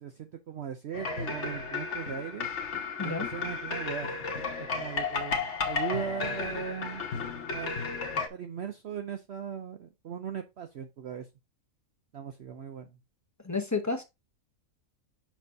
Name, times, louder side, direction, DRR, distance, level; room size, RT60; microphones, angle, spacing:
voice 1, 0.0-2.5 3.0-5.4 5.7-7.0 7.5-7.8 8.3-11.3 12.1-13.0, right 8 dB, 60° right, 0.8 m, -38 dB
sound 1, 0.9-8.3, left 4 dB, 60° left, 1.3 m, -33 dB
voice 2, 13.4-14.0, left 4 dB, 15° left, 0.6 m, -30 dB
7.4 x 5.4 x 2.7 m
omnidirectional pair, 1.5 m